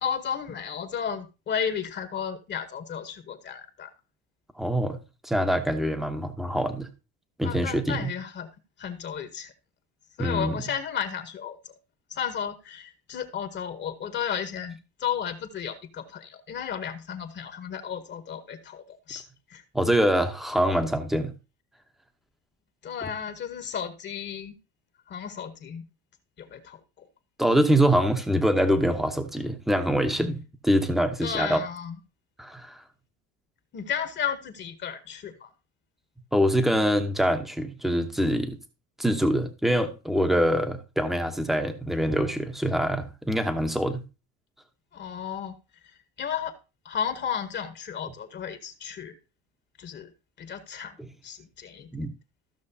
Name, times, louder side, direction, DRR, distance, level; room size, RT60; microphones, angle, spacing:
voice 1, 0.0-3.9 7.4-8.5 8.8-9.5 10.2-11.8 12.1-19.2 19.5-19.6 22.8-24.6 25.1-25.9 26.4-27.1 31.2-32.0 33.7-35.5 44.9-45.6 45.8-46.5 46.8-49.2 49.8-50.1 50.4-51.0 51.2-52.1, left 8 dB, 35° left, 1.1 m, -33 dB
voice 2, 4.6-5.0 5.2-6.9 7.4-8.1 10.2-10.5 19.7-21.3 27.4-31.6 32.4-32.8 36.3-38.6 39.0-44.0 51.9-52.1, equal, ahead, 0.8 m, -24 dB
14.0 x 6.2 x 2.7 m
cardioid pair, 145°, 31 cm